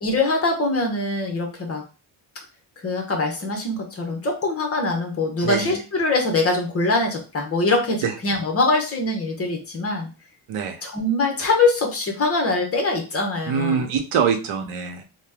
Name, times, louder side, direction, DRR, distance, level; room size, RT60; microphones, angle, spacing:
voice 1, 0.0-1.8 2.8-10.1 10.8-13.8, left 2 dB, 30° left, 2 dB, 0.7 m, -23 dB
voice 2, 5.4-5.8 8.0-8.1 10.5-10.8 13.5-15.0, right 7 dB, 85° right, 5 dB, 0.8 m, -24 dB
2.8 x 2.1 x 3.4 m, 0.33 s
cardioid pair, 175°, 48 cm